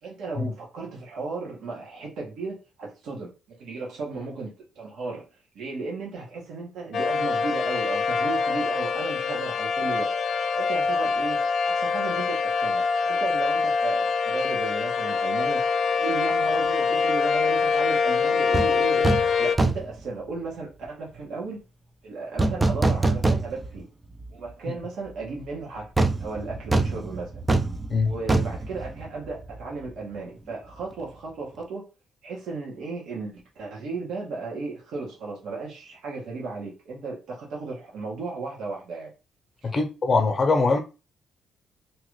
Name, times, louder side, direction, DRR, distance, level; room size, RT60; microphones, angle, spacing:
voice 1, 0.0-3.3 3.6-4.5 4.8-5.3 5.5-10.1 10.5-11.4 11.6-15.6 16.0-21.6 22.0-23.9 24.3-27.4 28.0-31.8 32.2-39.1 39.6-39.7, right 3 dB, 75° right, 1.2 m, -35 dB
sound 1, 6.9-19.6, left 5 dB, 60° left, 0.3 m, -24 dB
sound 2, 18.5-18.7 19.0-19.3 19.6-20.0 22.4-23.8 24.2-24.3 26.0-29.6 29.9-30.0, right 2 dB, 15° right, 0.4 m, -24 dB
voice 2, 39.6-40.8, left 3 dB, 35° left, 0.8 m, -22 dB
2.9 x 2.5 x 3.1 m
cardioid pair, 90°, 0 cm